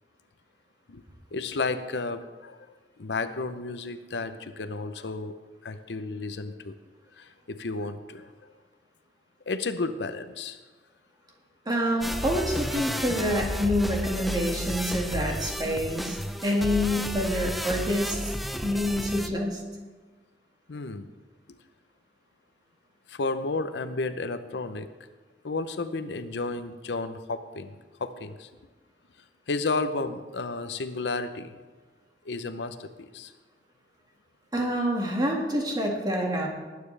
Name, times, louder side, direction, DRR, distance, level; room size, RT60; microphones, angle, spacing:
voice 1, 1.3-5.3 5.6-6.7 7.2-8.5 9.5-10.6 20.7-21.1 23.1-24.9 25.4-27.7 28.0-28.5 29.5-31.6 32.2-33.3, left 3 dB, 75° left, 10 dB, 0.7 m, -32 dB
voice 2, 11.7-16.2 16.4-18.3 18.6-19.6 34.5-36.5, equal, 25° right, 0 dB, 1.8 m, -27 dB
sound 1, 12.0-19.3, equal, ahead, 0.5 m, -32 dB
19.0 x 9.3 x 3.3 m, 1.3 s
head